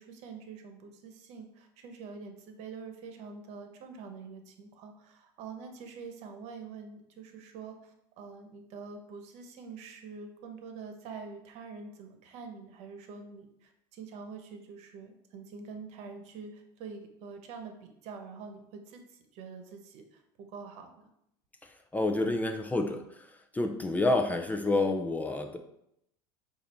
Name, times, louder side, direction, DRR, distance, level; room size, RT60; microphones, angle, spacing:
voice 1, 0.0-21.1, right 5 dB, 60° right, 5 dB, 1.1 m, -46 dB
voice 2, 21.6-23.3 23.5-25.6, left 2 dB, 10° left, 5 dB, 0.6 m, -29 dB
8.1 x 2.7 x 4.4 m, 0.79 s
supercardioid pair, 105°, 13 cm